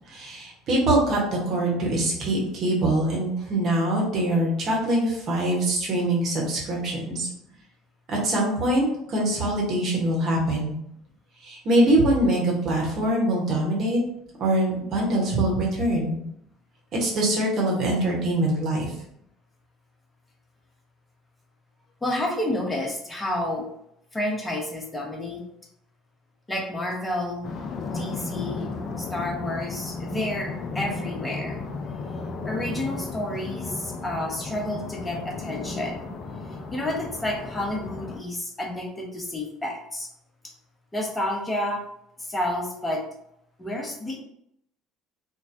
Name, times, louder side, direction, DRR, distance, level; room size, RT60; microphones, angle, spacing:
voice 1, 0.1-7.3 8.1-10.8 11.4-14.0 14.4-16.2 16.9-18.9, right 1 dB, 45° right, -2 dB, 1.0 m, -23 dB
voice 2, 22.0-23.7 24.1-25.4 26.5-27.5 27.9-31.6 32.4-36.1 36.7-40.1 40.9-41.8 42.2-43.0 43.6-44.2, left 1 dB, 15° left, 0 dB, 0.8 m, -30 dB
sound 1, 27.4-38.2, left 3 dB, 45° left, 0.4 m, -34 dB
3.1 x 2.2 x 2.5 m, 0.75 s
figure-of-eight pair, 60°, 0 cm